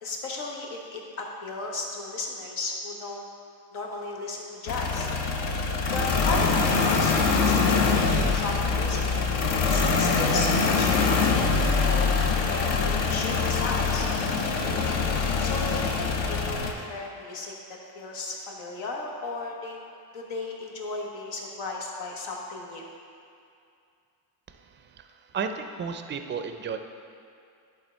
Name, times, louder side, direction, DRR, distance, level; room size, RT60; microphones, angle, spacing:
voice 1, 0.0-3.2 3.7-5.1 5.9-9.0 9.7-12.1 12.5-14.1 15.4-17.5 17.9-19.8 20.1-22.8, left 3 dB, 80° left, -1 dB, 1.4 m, -35 dB
sound 1, 4.7-16.7, left 4 dB, 65° left, 0.9 m, -24 dB
voice 2, 24.5-25.1 25.3-26.8, right 6 dB, 25° right, 7 dB, 0.4 m, -33 dB
10.5 x 3.7 x 4.4 m, 2.4 s
cardioid pair, 115°, 47 cm